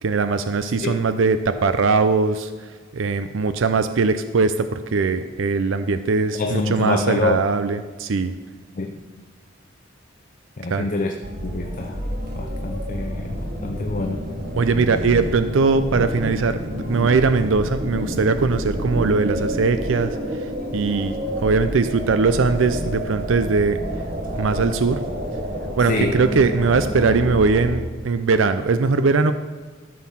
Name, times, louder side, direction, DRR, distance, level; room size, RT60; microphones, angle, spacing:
voice 1, 0.0-2.5 2.9-8.3 10.7-10.9 14.5-16.6 16.9-23.8 24.4-25.0 25.8-29.3, right 4 dB, 70° right, 10 dB, 0.5 m, -20 dB
voice 2, 6.3-7.4 8.7-9.0 10.6-11.2 11.4-12.0 12.3-14.2 25.9-26.2, left 3 dB, 40° left, 4 dB, 0.6 m, -26 dB
sound 1, 11.2-27.8, equal, 45° right, 1.6 m, -29 dB
13.5 x 6.4 x 5.7 m, 1.4 s
head